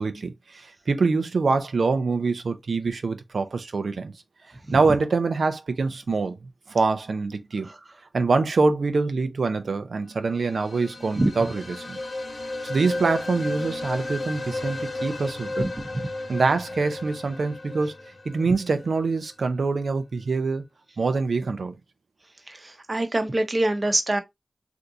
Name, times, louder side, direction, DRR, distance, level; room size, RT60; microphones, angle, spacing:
voice 1, 0.0-4.1 4.7-6.4 6.7-7.7 8.1-12.0 12.6-15.7 16.3-17.9 18.2-20.6 21.0-21.8, right 4 dB, 85° right, 0.5 m, -25 dB
sound 1, 10.2-19.0, left 2 dB, 70° left, 0.9 m, -34 dB
voice 2, 22.5-24.2, right 1 dB, 45° right, 0.8 m, -24 dB
3.5 x 2.6 x 2.6 m
cardioid pair, 45°, 0 cm